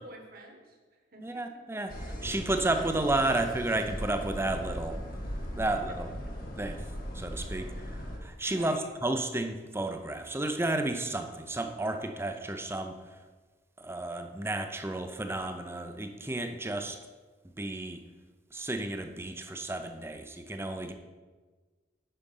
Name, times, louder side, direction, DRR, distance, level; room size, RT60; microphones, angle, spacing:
voice 1, 0.0-1.6 5.7-6.0 7.3-7.5 8.4-8.9 20.7-20.9, right 1 dB, 55° right, 2 dB, 1.6 m, -51 dB
voice 2, 1.2-5.0 5.6-6.1 6.6-6.8 7.1-13.0 13.8-17.0 17.6-18.0 18.5-20.9, right 2 dB, 15° right, 6 dB, 0.6 m, -32 dB
sound 1, 1.9-8.2, equal, 55° left, 1.7 m, -38 dB
10.0 x 5.2 x 5.5 m, 1.3 s
head